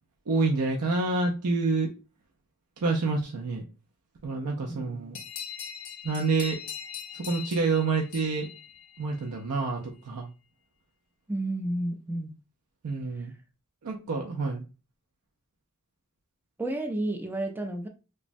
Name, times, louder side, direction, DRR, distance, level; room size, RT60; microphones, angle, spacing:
voice 1, 0.3-1.9 2.8-3.6 4.2-5.2 6.0-6.6 7.1-8.5 9.0-10.3 12.8-13.3 13.8-14.6, right 3 dB, 85° right, 0 dB, 0.5 m, -28 dB
voice 2, 4.7-5.2 11.3-12.4 16.6-17.9, right 1 dB, 10° right, 3 dB, 0.4 m, -31 dB
sound 1, 5.1-9.4, left 9 dB, 65° left, 0.5 m, -41 dB
3.3 x 2.0 x 2.5 m, 0.32 s
head